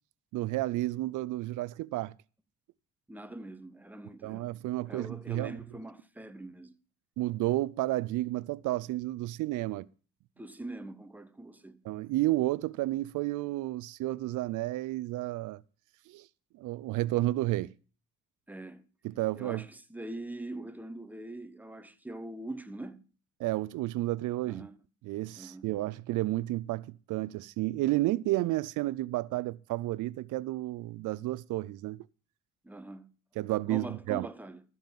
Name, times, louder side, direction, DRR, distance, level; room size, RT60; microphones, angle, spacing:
voice 1, 0.3-2.1 4.2-5.5 7.2-9.9 11.9-15.6 16.1-16.3 16.6-17.7 19.0-19.6 23.4-24.7 25.0-32.0 33.4-34.3, right 17 dB, 80° right, 0.5 m, -31 dB
voice 2, 3.1-4.5 4.9-6.7 10.4-11.8 18.5-18.8 19.3-23.0 24.4-24.8 25.3-25.7 32.6-33.1 33.7-34.6, right 1 dB, 5° right, 0.9 m, -43 dB
13.5 x 5.5 x 7.3 m
cardioid pair, 90°, 30 cm